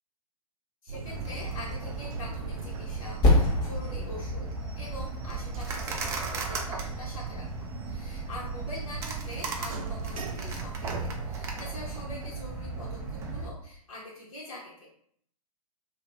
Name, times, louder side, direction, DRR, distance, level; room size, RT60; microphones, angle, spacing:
voice 1, 0.8-4.5 4.7-7.5 7.8-10.9 11.2-14.9, left 1 dB, 55° left, -6 dB, 1.2 m, -44 dB
sound 1, 0.9-13.3, right 3 dB, 65° right, 0.5 m, -43 dB
sound 2, 1.0-13.5, right 4 dB, 15° right, 0.4 m, -36 dB
Percussion, 3.2-8.1, left 2 dB, 20° left, 0.8 m, -29 dB
2.9 x 2.5 x 3.4 m, 0.64 s
figure-of-eight pair, 115°, 19 cm